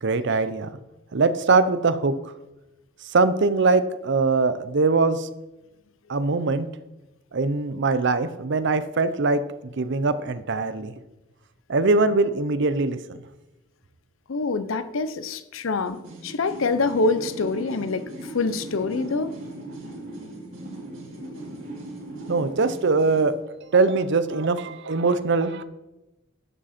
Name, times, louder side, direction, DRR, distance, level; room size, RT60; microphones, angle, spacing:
voice 1, 0.0-0.7 1.1-2.3 3.0-5.3 6.1-6.7 7.3-10.9 11.7-13.2 22.3-23.3 23.7-25.6, right 3 dB, 60° right, 13 dB, 0.6 m, -22 dB
voice 2, 14.3-18.1 18.3-19.3, left 3 dB, 80° left, 13 dB, 0.6 m, -25 dB
sound 1, 15.9-23.4, right 1 dB, 80° right, 3.7 m, -38 dB
11.0 x 7.5 x 4.3 m, 1.0 s
head